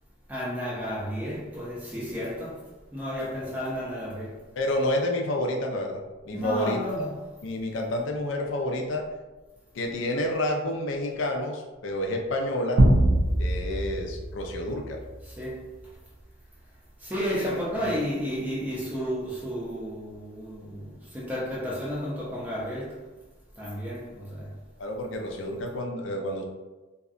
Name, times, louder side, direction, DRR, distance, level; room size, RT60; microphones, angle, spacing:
voice 1, 0.3-4.4 6.3-7.2 15.3-15.7 17.0-23.0 23.6-24.5, equal, 10° right, 0.5 m, -32 dB
voice 2, 4.6-7.1 7.4-9.0 9.7-12.9 13.4-15.0 17.4-17.9 24.8-26.4, left 1 dB, 70° left, 0.4 m, -29 dB
sound 1, 12.8-15.3, right 1 dB, 75° right, 0.5 m, -23 dB
2.6 x 2.1 x 2.4 m
head